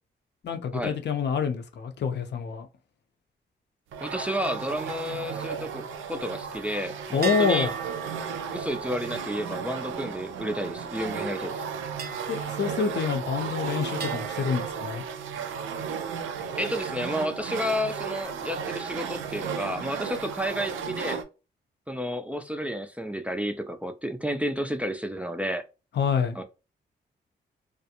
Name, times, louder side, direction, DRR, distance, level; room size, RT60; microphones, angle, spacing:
voice 1, 0.4-2.7 7.1-7.7 12.3-15.0 25.9-26.4, left 6 dB, 60° left, 0.5 m, -27 dB
sound 1, 3.9-21.2, right 6 dB, 90° right, 0.4 m, -34 dB
voice 2, 4.0-7.7 8.5-11.6 16.6-21.2 21.9-25.6 26.4-26.5, equal, 5° right, 0.4 m, -31 dB
sound 2, 7.2-10.9 12.0-13.5 14.0-15.7, right 6 dB, 50° right, 0.7 m, -40 dB
2.4 x 2.1 x 2.8 m
cardioid pair, 60°, 20 cm